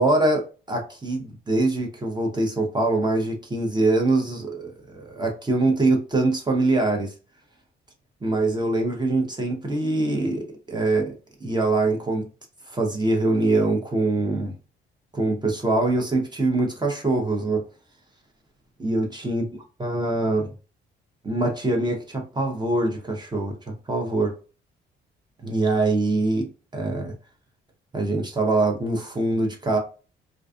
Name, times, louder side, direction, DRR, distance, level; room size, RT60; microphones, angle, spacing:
voice 1, 0.0-7.1 8.2-11.1 11.4-12.3 12.7-14.5 15.1-17.6 18.8-19.4 19.8-20.5 21.2-23.5 23.9-24.3 25.4-26.5 26.7-27.1 27.9-29.8, right 2 dB, 20° right, 1 dB, 0.7 m, -23 dB
2.5 x 2.3 x 2.4 m, 0.35 s
cardioid pair, 90°, 20 cm